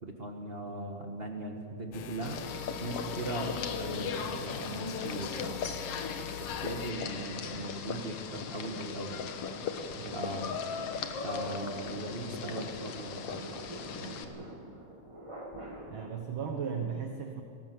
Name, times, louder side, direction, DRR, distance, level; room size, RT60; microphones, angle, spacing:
voice 1, 0.0-2.4 2.8-5.6 6.4-9.2 10.1-10.5 11.2-14.3, right 2 dB, 30° right, 2 dB, 1.1 m, -39 dB
sound 1, 1.9-6.9, left 8 dB, 80° left, 1.1 m, -43 dB
sound 2, 2.0-3.4 4.0-16.1, right 1 dB, 10° right, 1.7 m, -49 dB
sound 3, 2.2-14.2, left 6 dB, 60° left, 2.0 m, -38 dB
voice 2, 10.0-10.6 15.9-17.4, right 6 dB, 55° right, 4 dB, 1.6 m, -37 dB
19.5 x 17.5 x 7.8 m, 2.5 s
omnidirectional pair, 3.3 m